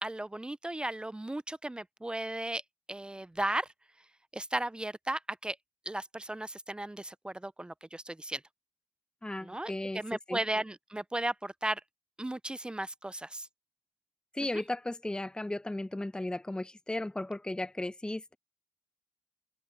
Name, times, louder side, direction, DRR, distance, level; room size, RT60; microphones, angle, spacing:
voice 1, 0.0-2.6 2.9-3.7 4.3-5.6 5.9-8.4 9.4-11.8 12.2-13.5, right 1 dB, 10° right, 0.7 m, -35 dB
voice 2, 9.2-10.0 10.3-10.4 14.3-18.3, left 1 dB, 10° left, 1.1 m, -35 dB
hypercardioid pair, 50°, 8 cm